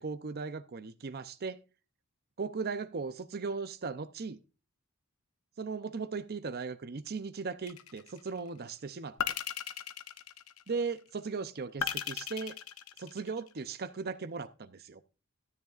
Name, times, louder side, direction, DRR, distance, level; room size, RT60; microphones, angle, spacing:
voice 1, 0.0-1.6 2.4-4.4 5.6-9.2 10.7-12.6 13.0-15.0, right 4 dB, 45° right, 0.6 m, -37 dB
sound 1, 7.7-8.3 9.2-10.9 11.8-13.6, left 9 dB, 70° left, 0.7 m, -37 dB
13.5 x 9.6 x 2.4 m
head